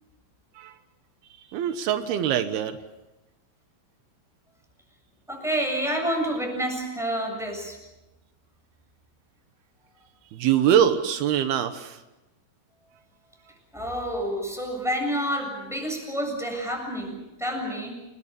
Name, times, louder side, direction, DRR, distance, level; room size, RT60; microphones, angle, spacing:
voice 1, 1.5-2.8 10.3-12.0, right 10 dB, 85° right, 9 dB, 3.2 m, -23 dB
voice 2, 5.3-7.8 13.7-18.0, equal, ahead, 2 dB, 7.3 m, -29 dB
29.5 x 21.0 x 7.0 m, 0.97 s
omnidirectional pair, 4.4 m